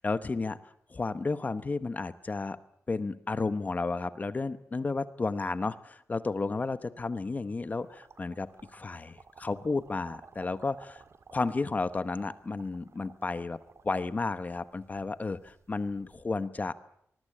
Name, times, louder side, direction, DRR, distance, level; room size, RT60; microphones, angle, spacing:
voice 1, 0.0-2.6 2.9-11.0 11.3-13.6 13.8-17.0, left 3 dB, 30° left, 12 dB, 1.0 m, -32 dB
sound 1, 7.7-16.2, right 5 dB, 60° right, 2.0 m, -55 dB
26.0 x 20.5 x 8.7 m, 0.72 s
wide cardioid pair, 170°, 5 cm